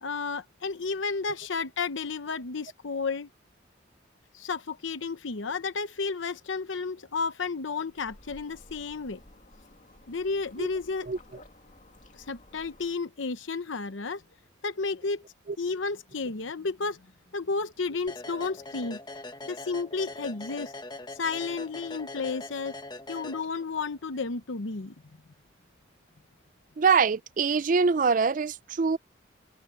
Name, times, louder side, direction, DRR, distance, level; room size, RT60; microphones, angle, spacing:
voice 1, 0.0-3.3 4.3-9.2 10.1-11.1 12.2-14.2 14.6-15.2 15.6-17.0 17.3-19.0 19.5-20.7 21.1-22.7 23.1-24.9, left 4 dB, 85° left, 0.9 m, -32 dB
sound 1, 7.9-13.0, left 1 dB, 40° left, 2.4 m, -54 dB
sound 2, 18.1-23.9, left 2 dB, 20° left, 1.1 m, -42 dB
voice 2, 26.8-29.0, right 5 dB, 45° right, 0.4 m, -24 dB
head